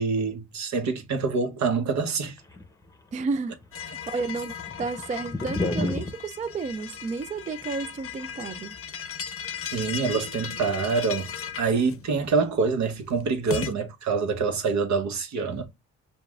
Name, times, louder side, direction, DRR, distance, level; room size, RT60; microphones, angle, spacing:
voice 1, 0.0-2.4 9.7-11.3 11.6-15.7, right 4 dB, 65° right, 1.1 m, -26 dB
sound 1, 2.4-3.4 3.6-3.7 4.1-6.2, left 2 dB, 10° left, 0.8 m, -30 dB
voice 2, 3.1-8.7, right 4 dB, 25° right, 0.4 m, -32 dB
sound 2, 3.7-13.7, left 7 dB, 45° left, 0.6 m, -37 dB
6.8 x 2.4 x 2.3 m
cardioid pair, 90°, 30 cm